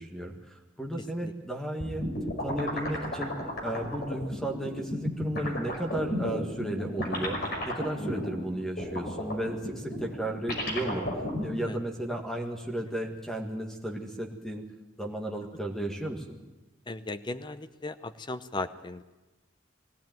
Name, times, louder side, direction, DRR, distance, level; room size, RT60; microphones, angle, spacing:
voice 1, 0.0-2.0 2.4-3.3 3.6-11.1 11.4-14.6 15.0-16.4, right 1 dB, ahead, 2 dB, 1.8 m, -34 dB
sound 1, 1.8-11.5, left 1 dB, 50° left, 5.5 m, -33 dB
voice 2, 16.9-19.0, left 2 dB, 25° left, 11 dB, 0.7 m, -37 dB
21.5 x 16.0 x 9.2 m, 1.1 s
head